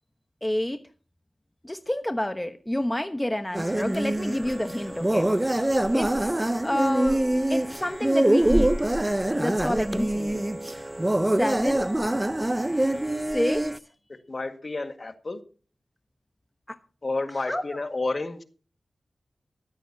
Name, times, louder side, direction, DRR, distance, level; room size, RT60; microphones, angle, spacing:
voice 1, 0.4-0.8 1.6-6.4 6.6-7.2 7.5-8.7 9.4-10.4 11.3-11.9 13.3-13.7 17.5-17.8, left 1 dB, 15° left, 1.0 m, -29 dB
sound 1, 3.5-13.8, right 1 dB, 20° right, 0.6 m, -25 dB
voice 2, 14.3-15.4 17.0-18.4, left 3 dB, 50° left, 1.8 m, -30 dB
15.5 x 13.0 x 2.8 m
cardioid pair, 50°, 0 cm